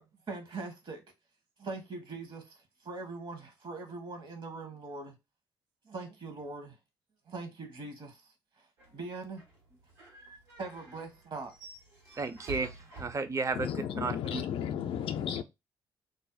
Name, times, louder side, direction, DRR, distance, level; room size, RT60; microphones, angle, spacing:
voice 1, 0.3-1.0 1.6-2.4 2.8-5.1 5.9-6.8 7.3-8.2 8.9-9.4 10.6-11.5 14.7-14.8, right 3 dB, 50° right, 1.1 m, -41 dB
sound 1, 8.8-13.8, right 1 dB, 80° right, 1.4 m, -49 dB
voice 2, 12.2-13.7 13.9-14.4, right 4 dB, 30° right, 0.6 m, -33 dB
voice 3, 13.5-15.4, left 9 dB, 60° left, 0.4 m, -34 dB
2.6 x 2.0 x 3.8 m
hypercardioid pair, 55°, 10 cm